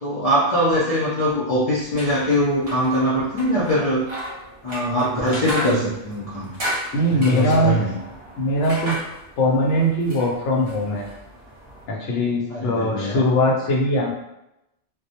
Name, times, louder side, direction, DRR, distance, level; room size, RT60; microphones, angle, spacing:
voice 1, 0.0-4.1 4.6-6.5 7.1-8.0 12.5-13.2, equal, 45° left, -9 dB, 0.5 m, -22 dB
sound 1, 1.8-11.9, equal, 35° right, 0.8 m, -35 dB
voice 2, 6.9-7.8 8.4-9.0 9.4-11.1 11.9-14.1, equal, 85° left, -1 dB, 0.9 m, -20 dB
2.2 x 2.0 x 2.7 m, 0.88 s
omnidirectional pair, 1.2 m